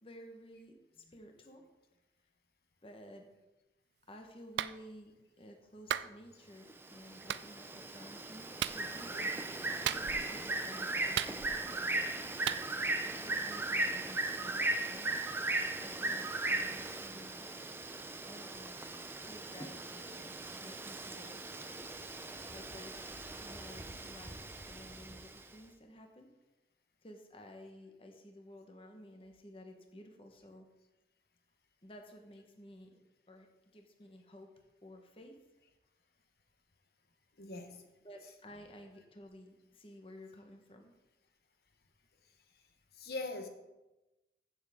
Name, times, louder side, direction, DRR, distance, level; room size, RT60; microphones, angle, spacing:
voice 1, 0.0-1.6 2.8-3.3 4.1-9.2 10.2-12.2 13.2-15.2 15.8-17.4 18.2-20.3 20.6-21.4 22.5-26.3 27.0-30.7 31.8-33.0 33.3-33.5 33.7-34.5 34.8-35.4 38.0-40.9, equal, 30° left, 4 dB, 1.1 m, -54 dB
Clapping, 4.6-4.8 5.9-6.1 7.3-7.5 8.6-8.8 9.9-10.3 11.2-11.7 12.5-12.6, right 10 dB, 80° right, 0.3 m, -35 dB
Bird, 6.7-25.4, right 2 dB, 15° right, 0.5 m, -38 dB
voice 2, 9.1-10.2 37.4-37.8 38.2-38.4 43.0-43.5, left 2 dB, 60° left, 6 dB, 1.1 m, -44 dB
15.0 x 7.0 x 3.6 m, 1.0 s
head